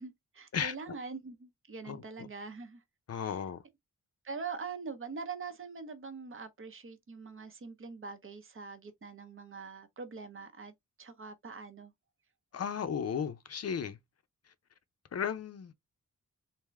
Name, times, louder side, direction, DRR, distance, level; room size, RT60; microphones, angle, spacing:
voice 1, 0.0-2.8 3.1-3.4 4.2-10.7 11.0-11.9, right 4 dB, 40° right, 0.7 m, -43 dB
voice 2, 1.9-2.3 3.1-3.6 12.5-14.0 15.1-15.7, left 7 dB, 50° left, 0.5 m, -35 dB
3.5 x 2.6 x 3.1 m
wide cardioid pair, 165°, 31 cm